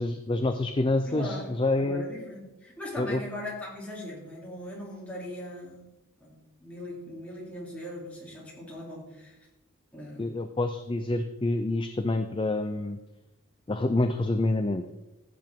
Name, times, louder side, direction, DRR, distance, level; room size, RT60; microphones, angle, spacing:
voice 1, 0.0-2.0 3.0-3.2 10.2-13.0 13.7-14.8, left 2 dB, 20° left, 8 dB, 0.4 m, -27 dB
voice 2, 1.1-5.9 6.2-9.4 9.9-10.3, left 1 dB, 5° left, -5 dB, 3.1 m, -40 dB
15.0 x 7.8 x 3.7 m, 0.99 s
head